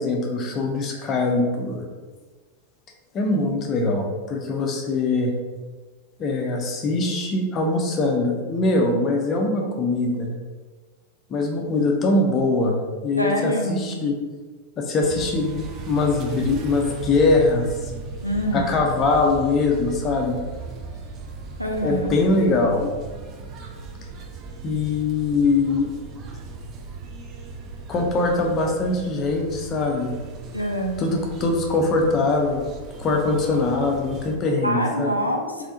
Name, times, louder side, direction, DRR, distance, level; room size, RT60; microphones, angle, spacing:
voice 1, 0.0-1.9 3.1-5.3 6.2-10.3 11.3-14.1 14.8-17.9 18.5-20.4 21.8-22.9 24.6-25.9 27.9-30.1 31.0-32.7 33.0-35.1, left 3 dB, 30° left, 1 dB, 0.6 m, -22 dB
voice 2, 13.2-13.8 18.2-18.7 21.6-22.1 30.5-31.0 34.6-35.7, equal, 90° left, 1 dB, 0.3 m, -25 dB
sound 1, 15.0-34.4, right 4 dB, 30° right, 0.4 m, -37 dB
3.3 x 2.7 x 2.6 m, 1.4 s
figure-of-eight pair, 90°, 0 cm